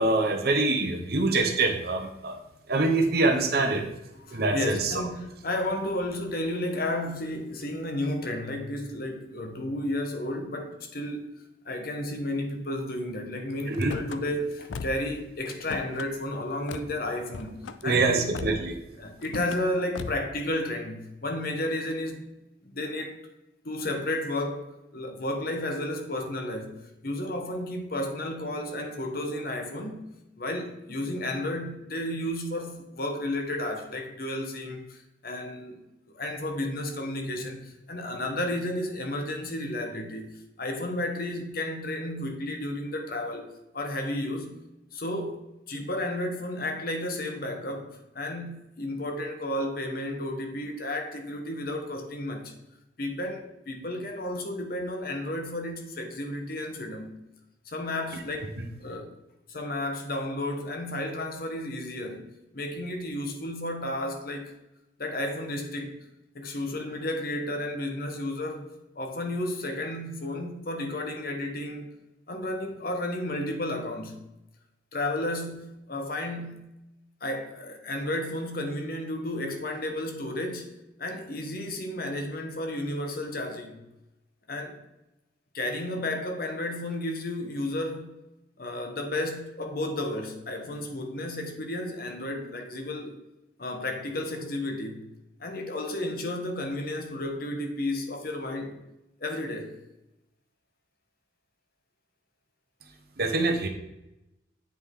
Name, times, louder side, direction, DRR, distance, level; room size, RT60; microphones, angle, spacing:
voice 1, 0.0-2.4 2.7-3.8 4.3-4.9 13.7-13.9 17.8-18.8 103.2-103.7, right 3 dB, 55° right, 1.1 m, -24 dB
voice 2, 3.5-3.8 4.1-11.2 11.6-17.6 17.8-18.4 18.9-22.2 22.6-23.2 23.6-24.7 24.9-30.0 30.4-35.8 36.1-40.3 40.6-43.5 43.7-44.6 44.9-45.4 45.7-52.5 53.0-57.1 57.6-59.1 59.5-62.2 62.5-64.5 65.0-66.0 66.3-71.9 72.3-74.2 74.9-76.7 77.2-80.7 81.0-83.8 84.5-84.8 85.5-88.2 88.6-93.2 93.6-95.1 95.4-98.8 99.2-99.7, left 1 dB, 50° left, 1.1 m, -32 dB
Car / Slam, 13.7-14.2 14.7-15.1 15.4-16.1 16.7-16.9 17.3-17.8 18.3-18.8 19.2-19.6 19.9-20.3, left 4 dB, 85° left, 0.4 m, -37 dB
8.7 x 5.1 x 3.7 m
head